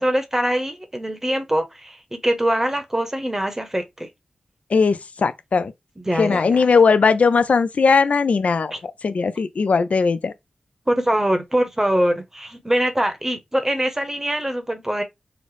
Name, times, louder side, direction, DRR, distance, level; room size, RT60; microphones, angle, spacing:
voice 1, 0.0-4.1 6.0-6.6 8.7-8.8 10.9-15.0, right 1 dB, 15° right, 0.9 m, -23 dB
voice 2, 4.7-5.7 6.2-10.3, left 5 dB, 70° left, 0.4 m, -18 dB
3.9 x 2.0 x 3.2 m
cardioid pair, 45°, 2 cm